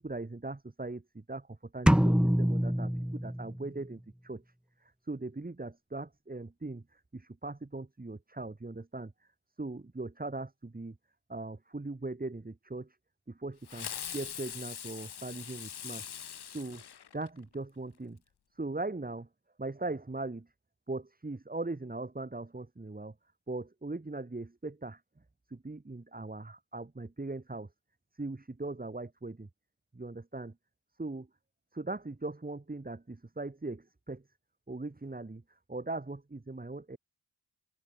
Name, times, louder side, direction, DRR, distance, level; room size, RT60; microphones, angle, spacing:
voice 1, 0.0-4.4 5.1-9.1 9.6-11.0 11.3-13.0 13.3-16.0 16.5-16.8 17.1-18.2 18.6-19.3 19.6-20.5 20.9-23.1 23.5-25.0 25.5-27.7 28.2-29.5 29.9-30.5 31.0-31.3 31.7-34.2 34.7-35.4 35.7-37.0, right 2 dB, 20° right, 3.6 m, -39 dB
sound 1, 1.9-3.8, equal, ahead, 1.4 m, -26 dB
Fireworks, 13.7-17.5, left 8 dB, 70° left, 6.9 m, -42 dB
open air
supercardioid pair, 55°, 41 cm